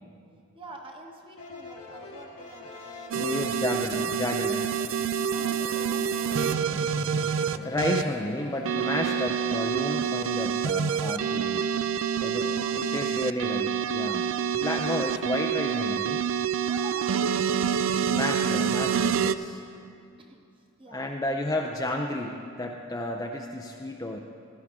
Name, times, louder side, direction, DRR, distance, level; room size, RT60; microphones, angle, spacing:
voice 1, 0.5-3.6 5.3-7.3 12.2-13.2 16.6-17.8 20.2-21.3, right 2 dB, 25° right, 1 dB, 1.1 m, -47 dB
sound 1, 1.4-9.4, left 2 dB, 80° left, 1.4 m, -43 dB
voice 2, 3.1-4.7 7.6-11.6 12.2-14.3 14.5-16.2 18.1-19.6 20.9-24.2, left 1 dB, 15° left, 2 dB, 0.4 m, -32 dB
sound 2, 3.1-8.0 8.7-19.4, right 7 dB, 60° right, 0.3 m, -27 dB
16.0 x 11.5 x 3.6 m, 2.4 s
head